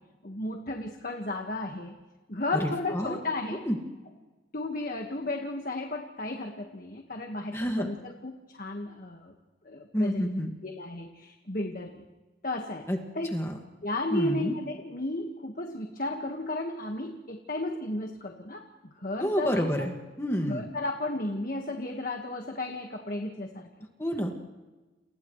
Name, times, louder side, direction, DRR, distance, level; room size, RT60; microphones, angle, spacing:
voice 1, 0.2-1.9 2.3-3.7 4.5-9.3 9.6-10.3 10.6-12.0 12.4-12.9 13.1-13.3 13.8-18.6 19.0-19.7 20.4-23.7, left 2 dB, 45° left, 2 dB, 1.6 m, -34 dB
voice 2, 2.5-3.2 3.7-3.8 7.5-7.9 9.9-10.5 12.9-13.0 13.3-13.6 14.1-14.6 19.2-20.7 24.0-24.3, equal, 15° left, 2 dB, 1.9 m, -29 dB
30.0 x 29.5 x 3.2 m, 1.2 s
head